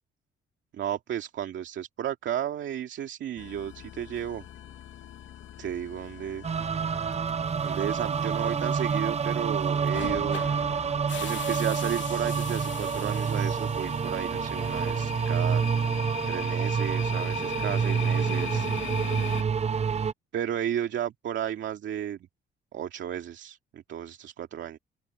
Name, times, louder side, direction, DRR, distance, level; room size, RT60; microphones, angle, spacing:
voice 1, 0.7-4.4 5.6-6.4 7.6-10.4 11.2-15.6 16.3-18.7 20.3-22.3 22.7-24.8, right 10 dB, 70° right, 2.5 m, -33 dB
sound 1, 3.4-19.4, left 10 dB, 70° left, 3.0 m, -40 dB
sound 2, 6.4-20.1, right 6 dB, 30° right, 0.7 m, -28 dB
open air
cardioid pair, 90°, 20 cm